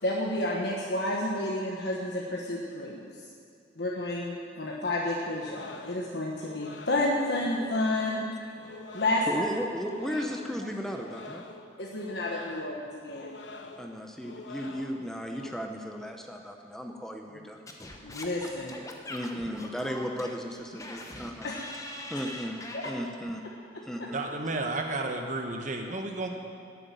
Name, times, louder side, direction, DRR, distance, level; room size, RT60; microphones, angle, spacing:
voice 1, 0.0-3.1 3.8-8.5 8.9-9.5 10.1-10.2 11.8-13.3 18.0-18.8 22.7-22.9 23.7-23.8, left 1 dB, 65° left, -3 dB, 1.4 m, -30 dB
sound 1, 5.2-15.5, left 3 dB, 85° left, 1.1 m, -46 dB
voice 2, 9.3-11.5 13.8-17.6 19.1-21.5 22.1-23.4 23.8-24.2, equal, 5° left, 3 dB, 0.8 m, -35 dB
Singing / Scratching (performance technique), 17.7-23.0, left 1 dB, 20° left, 1.1 m, -42 dB
voice 3, 24.1-26.3, right 2 dB, 45° right, 3 dB, 1.2 m, -32 dB
13.5 x 8.0 x 9.2 m, 2.3 s
head